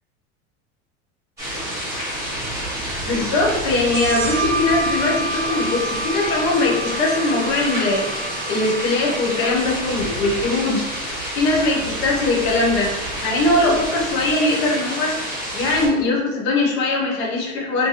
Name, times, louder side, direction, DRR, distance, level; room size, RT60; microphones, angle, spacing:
sound 1, 1.4-15.9, right 1 dB, 5° right, 1.4 m, -28 dB
voice 1, 3.0-10.9 11.3-12.9 13.2-15.1 15.5-17.9, left 2 dB, 50° left, -1 dB, 0.9 m, -21 dB
sound 2, 3.8-11.1, right 2 dB, 75° right, 0.5 m, -30 dB
2.9 x 2.1 x 4.0 m, 1.1 s
supercardioid pair, 165°, 40 cm